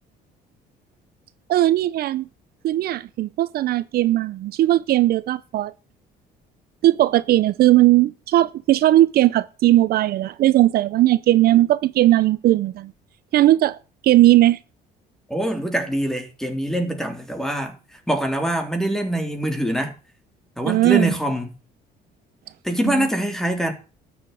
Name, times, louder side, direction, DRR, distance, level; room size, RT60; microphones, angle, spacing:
voice 1, 1.5-2.3 2.6-5.7 6.8-12.9 13.3-13.8 14.0-14.6 20.7-21.1 22.9-23.1, right 15 dB, 65° right, 0.7 m, -18 dB
voice 2, 15.3-19.9 20.6-21.5 22.6-23.7, right 1 dB, 5° left, 3.7 m, -24 dB
13.0 x 7.3 x 9.3 m
cardioid pair, 110°, 17 cm